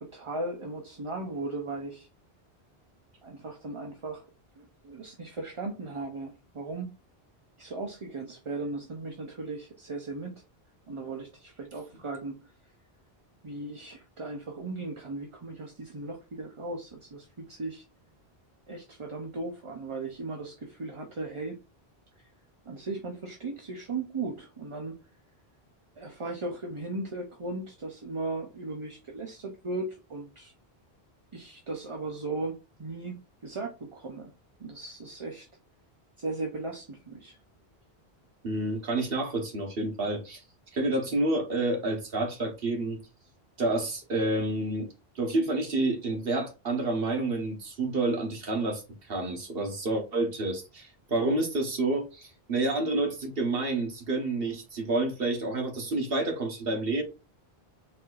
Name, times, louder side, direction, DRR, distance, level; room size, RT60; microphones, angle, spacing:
voice 1, 0.0-2.1 3.2-4.3 4.6-6.9 7.6-10.4 10.9-12.5 13.4-17.9 18.7-21.6 22.2-22.3 22.7-25.0 26.0-30.5 31.3-34.3 34.6-35.5 36.2-37.4, right 3 dB, 35° right, 0.6 m, -37 dB
voice 2, 38.4-40.4 40.7-43.0 43.6-44.9 45.1-57.0, right 2 dB, 65° right, 1.3 m, -29 dB
4.3 x 4.2 x 2.4 m
omnidirectional pair, 1.1 m